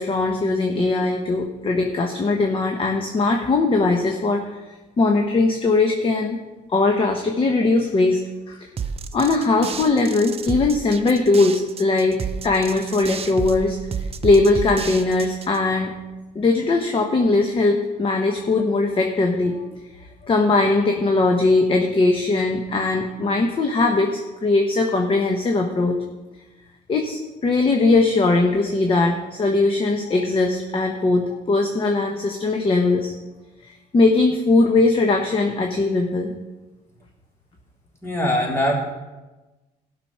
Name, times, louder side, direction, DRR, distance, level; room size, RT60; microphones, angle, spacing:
voice 1, 0.0-4.6 5.0-6.4 6.7-8.7 9.1-12.2 12.4-13.8 14.2-15.9 16.3-19.6 20.2-26.0 26.9-33.1 33.6-36.3, left 3 dB, 30° left, 3 dB, 1.1 m, -20 dB
sound 1, 8.8-15.6, right 6 dB, 35° right, 0.8 m, -31 dB
voice 2, 38.0-38.8, left 1 dB, 15° left, -3 dB, 3.9 m, -21 dB
15.5 x 6.1 x 5.8 m, 1.1 s
cardioid pair, 110°, 17 cm